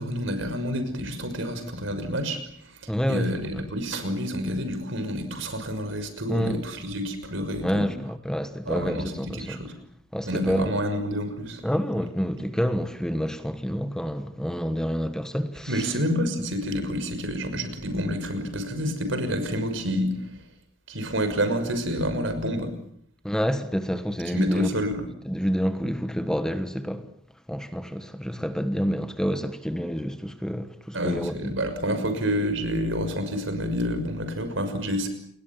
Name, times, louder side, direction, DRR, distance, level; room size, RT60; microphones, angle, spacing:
voice 1, 0.0-2.4 3.1-7.8 8.7-9.7 10.2-11.6 15.7-20.1 20.9-22.7 24.3-25.1 30.9-35.1, equal, 70° right, 6.2 m, -28 dB
voice 2, 2.9-3.3 6.3-6.6 7.6-9.6 10.1-10.8 11.6-16.0 23.2-24.7 25.3-27.1 27.5-31.5, equal, 5° left, 1.4 m, -28 dB
30.0 x 21.0 x 7.4 m
head